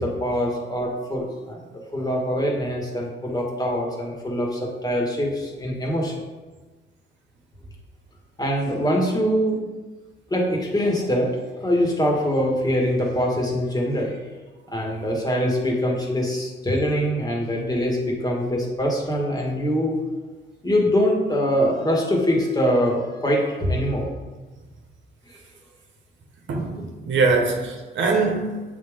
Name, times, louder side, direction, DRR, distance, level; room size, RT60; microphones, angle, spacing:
voice 1, 0.0-6.1 8.4-9.6 10.3-14.3 14.7-19.9 20.6-24.1 25.3-25.4, equal, 20° left, -1 dB, 1.6 m, -23 dB
voice 2, 26.5-28.6, right 4 dB, 65° right, 2 dB, 1.1 m, -22 dB
7.5 x 3.6 x 3.6 m, 1.3 s
cardioid pair, 90°, 20 cm